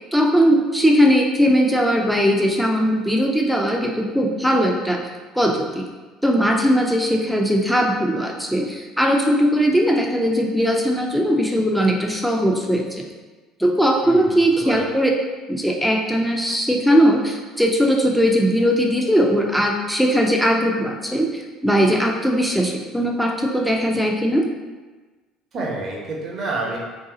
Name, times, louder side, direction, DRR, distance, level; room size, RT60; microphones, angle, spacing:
voice 1, 0.1-5.0 5.4-5.8 6.2-13.0 13.6-15.1 15.5-24.5, equal, ahead, 1 dB, 0.5 m, -19 dB
voice 2, 14.0-14.9 25.5-26.8, right 2 dB, 50° right, -2 dB, 0.9 m, -29 dB
2.7 x 2.3 x 3.8 m, 1.3 s
hypercardioid pair, 65°, 0 cm